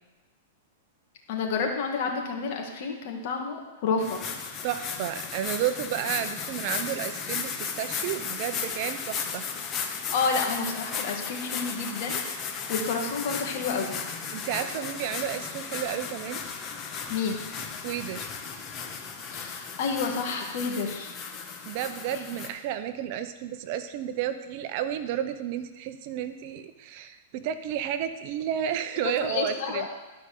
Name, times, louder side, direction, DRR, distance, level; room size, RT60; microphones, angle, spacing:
voice 1, 1.3-4.2 10.1-12.2 12.7-14.0 17.1-17.4 19.3-21.2 29.2-29.8, left 5 dB, 55° left, 1 dB, 2.0 m, -29 dB
sound 1, 4.0-22.5, left 6 dB, 30° left, 1.1 m, -35 dB
voice 2, 4.6-9.5 14.3-16.4 17.8-18.3 21.7-29.9, right 10 dB, 50° right, 10 dB, 0.7 m, -32 dB
12.0 x 5.1 x 6.7 m, 1.2 s
hypercardioid pair, 135°, 0 cm